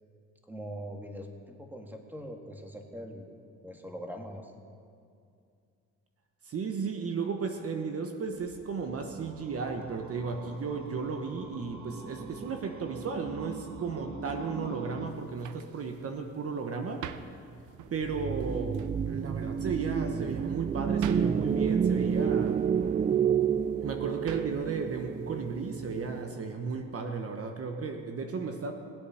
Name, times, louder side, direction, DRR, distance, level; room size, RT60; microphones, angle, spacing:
voice 1, 0.5-3.3 3.6-4.5, equal, 5° right, 2 dB, 1.8 m, -42 dB
voice 2, 6.4-17.0 17.9-22.6 23.8-28.7, right 5 dB, 50° right, 4 dB, 1.1 m, -34 dB
sound 1, 8.3-15.1, right 4 dB, 65° right, 1.5 m, -44 dB
sound 2, 15.1-26.2, right 9 dB, 85° right, 0.7 m, -49 dB
sound 3, 18.0-26.4, right 7 dB, 25° right, 0.3 m, -29 dB
20.0 x 8.4 x 5.7 m, 2.4 s
cardioid pair, 90°, 30 cm